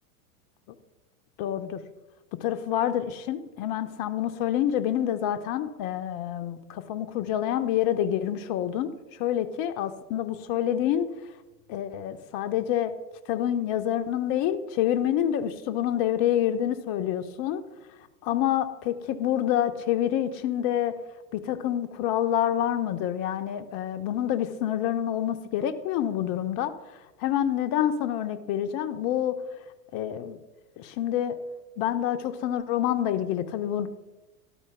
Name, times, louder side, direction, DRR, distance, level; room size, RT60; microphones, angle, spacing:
voice 1, 1.4-1.8 2.4-8.9 9.2-11.1 11.7-12.9 13.3-17.6 18.2-20.9 21.3-26.7 27.2-29.3 29.9-30.4 30.8-31.4 31.8-33.9, left 11 dB, 45° left, 10 dB, 0.8 m, -27 dB
12.0 x 4.5 x 4.5 m, 1.1 s
hypercardioid pair, 95°, 47 cm